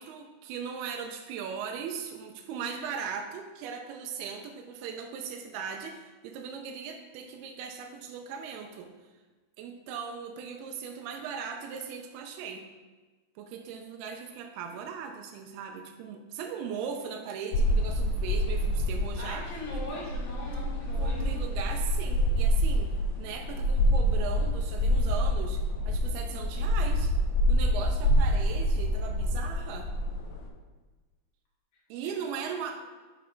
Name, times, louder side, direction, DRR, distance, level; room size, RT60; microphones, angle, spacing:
voice 1, 0.0-8.9 9.6-12.7 13.4-19.8 21.0-27.1 27.5-29.9 31.9-32.8, right 6 dB, 85° right, 3 dB, 2.6 m, -38 dB
sound 1, 17.5-30.5, equal, 80° left, 1.7 m, -27 dB
voice 2, 19.2-21.3 32.0-32.1, left 1 dB, 50° left, -7 dB, 3.1 m, -40 dB
6.9 x 5.1 x 4.5 m, 1.3 s
omnidirectional pair, 4.5 m